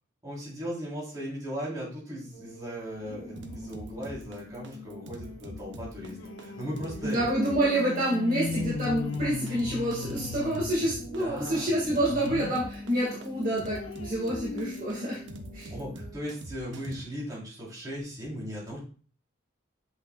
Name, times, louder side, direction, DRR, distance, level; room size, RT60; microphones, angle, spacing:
voice 1, 0.2-7.4 11.0-11.7 15.7-18.8, equal, 20° right, -7 dB, 3.5 m, -37 dB
sound 1, 2.3-16.1, right 1 dB, 15° left, 1.9 m, -46 dB
sound 2, 3.1-12.7 13.1-16.2 16.7-16.8 17.1-17.2, left 4 dB, 85° left, 0.6 m, -40 dB
sound 3, 3.4-17.0, right 1 dB, 65° right, 0.8 m, -44 dB
voice 2, 7.0-15.2 15.5-15.7, right 1 dB, 45° right, -5 dB, 1.8 m, -28 dB
7.6 x 6.2 x 2.3 m, 0.40 s
head